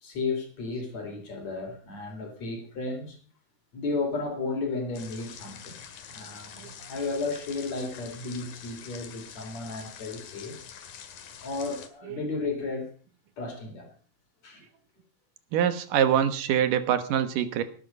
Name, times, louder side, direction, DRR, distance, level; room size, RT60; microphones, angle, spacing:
voice 1, 0.0-3.2 3.7-5.8 6.1-10.6 11.4-12.9 13.4-13.9 14.4-14.6, left 3 dB, 50° left, 4.7 m, -33 dB
sound 1, 4.9-11.9, left 8 dB, 85° left, 3.6 m, -46 dB
voice 2, 15.5-17.6, right 9 dB, 75° right, 2.8 m, -25 dB
18.5 x 11.5 x 5.5 m
omnidirectional pair, 4.0 m